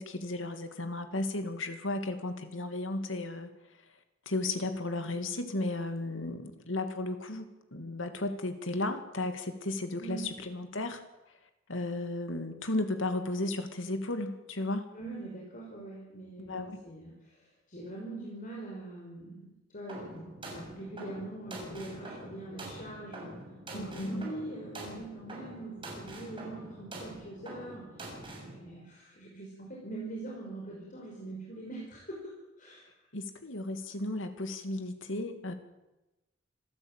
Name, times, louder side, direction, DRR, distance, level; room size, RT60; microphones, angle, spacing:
voice 1, 0.0-3.5 4.3-11.0 11.7-14.9 16.4-16.8 23.7-24.3 33.1-35.5, left 2 dB, 80° left, 8 dB, 2.6 m, -34 dB
voice 2, 14.9-23.3 23.7-27.8 28.5-32.2 32.6-32.9, right 2 dB, 45° left, -2 dB, 5.5 m, -43 dB
sound 1, 19.9-28.5, right 1 dB, 25° right, 6.9 m, -45 dB
26.5 x 13.5 x 9.2 m, 1.0 s
head